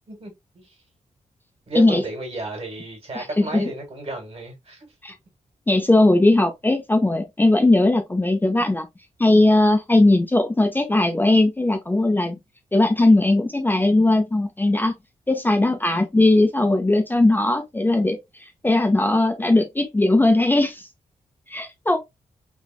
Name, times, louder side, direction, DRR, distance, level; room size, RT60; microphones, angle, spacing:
voice 1, 0.1-0.8 1.7-4.9, right 2 dB, 50° right, 1.6 m, -33 dB
voice 2, 3.1-3.7 5.0-5.1 5.7-8.9 9.2-12.4 12.7-14.9 15.3-20.9 21.5-22.0, left 2 dB, 15° left, 0.5 m, -19 dB
3.4 x 2.4 x 2.3 m
cardioid pair, 90°, 13 cm